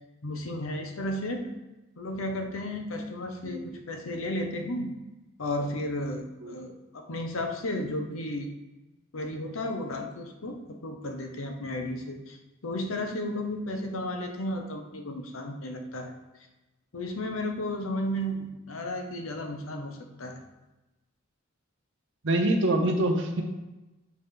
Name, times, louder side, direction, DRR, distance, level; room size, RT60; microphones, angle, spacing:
voice 1, 0.2-1.5 2.0-5.0 5.4-8.5 9.1-12.4 12.6-16.1 16.9-20.4, left 1 dB, 85° left, 4 dB, 0.8 m, -33 dB
voice 2, 22.2-23.4, right 1 dB, 65° right, 3 dB, 0.8 m, -25 dB
7.0 x 3.3 x 4.5 m, 1.0 s
head